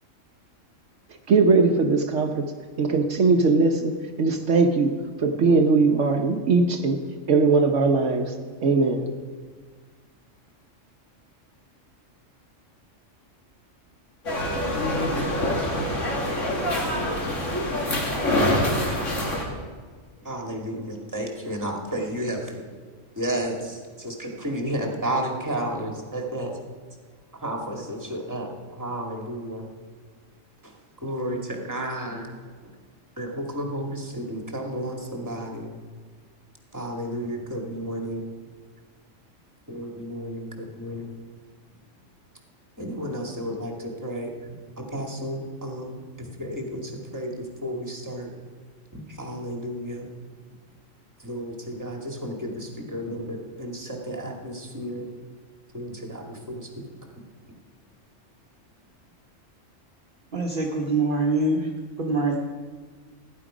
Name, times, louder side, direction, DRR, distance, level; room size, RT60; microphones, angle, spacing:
voice 1, 1.3-2.5 2.8-7.0 7.3-8.3 8.6-9.1, right 4 dB, 70° right, 4 dB, 1.2 m, -20 dB
sound 1, 14.2-19.4, left 1 dB, 70° left, 2.6 m, -25 dB
voice 2, 20.2-22.6 23.2-26.6 27.4-29.7 30.6-30.7 31.0-32.3 33.2-35.7 36.7-38.2 39.7-41.1 42.8-48.3 48.9-50.1 51.2-55.1 55.7-56.7, right 1 dB, 15° right, 1 dB, 1.9 m, -32 dB
voice 3, 60.3-61.7 62.0-62.4, right 2 dB, 45° right, 0 dB, 1.2 m, -24 dB
17.0 x 10.5 x 5.0 m, 1.5 s
omnidirectional pair, 1.3 m